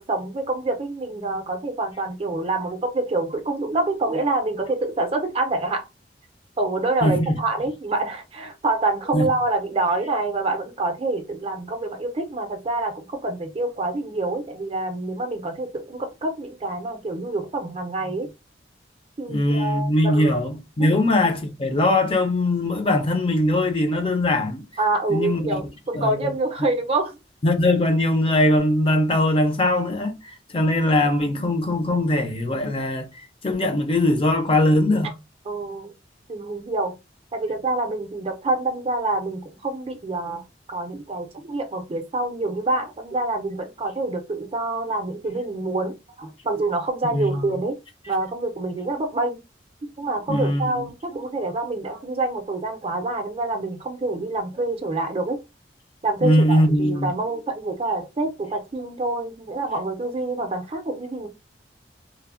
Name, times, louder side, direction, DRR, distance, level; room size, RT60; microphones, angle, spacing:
voice 1, 0.0-5.8 6.6-18.3 19.2-20.4 20.8-20.9 24.8-27.1 35.5-35.9 36.3-37.0 37.3-47.8 48.1-49.4 50.0-55.4 56.0-61.3, right 2 dB, 35° right, 0.5 m, -26 dB
voice 2, 7.0-7.4 9.1-9.3 19.3-24.6 25.1-25.6 25.9-26.3 27.4-35.1 47.1-47.5 50.3-50.8 56.2-57.1, left 1 dB, 30° left, 0.5 m, -21 dB
3.1 x 2.0 x 2.4 m
head